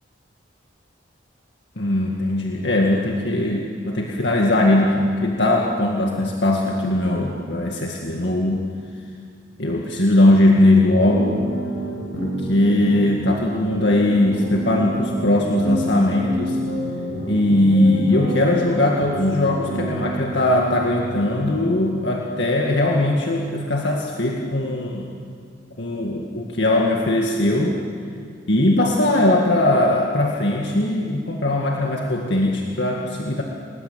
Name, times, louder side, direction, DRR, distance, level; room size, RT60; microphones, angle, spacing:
voice 1, 1.8-8.6 9.6-11.5 12.2-16.6 17.2-25.1 25.8-27.8 28.5-33.4, left 1 dB, 65° left, 0 dB, 2.0 m, -20 dB
sound 1, 10.6-21.5, right 1 dB, 85° left, 5.9 m, -29 dB
28.5 x 20.5 x 8.6 m, 2.2 s
head